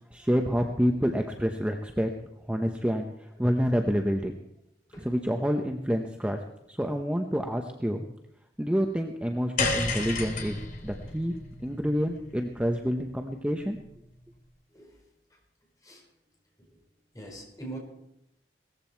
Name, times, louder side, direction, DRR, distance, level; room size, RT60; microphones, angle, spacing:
voice 1, 0.0-2.1 2.5-4.3 5.0-6.4 6.7-8.0 8.6-11.4 11.6-13.8, equal, 5° right, 3 dB, 0.8 m, -28 dB
sound 1, 9.6-14.0, left 3 dB, 50° left, 2.7 m, -33 dB
voice 2, 17.1-17.8, right 2 dB, 20° left, 0 dB, 4.9 m, -42 dB
18.5 x 14.5 x 4.5 m, 0.82 s
head